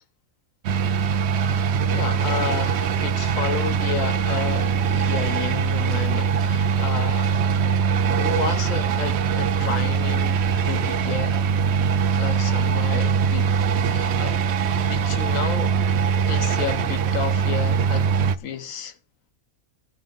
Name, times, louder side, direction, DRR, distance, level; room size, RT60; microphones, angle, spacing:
sound 1, 0.6-18.4, right 6 dB, 65° right, 0.7 m, -22 dB
voice 1, 1.4-7.5 8.1-10.4 10.6-11.4 12.2-13.5 13.9-14.4 14.8-15.8 16.3-18.1 18.4-19.0, left 7 dB, 70° left, 1.3 m, -31 dB
15.5 x 5.5 x 3.9 m
omnidirectional pair, 1.4 m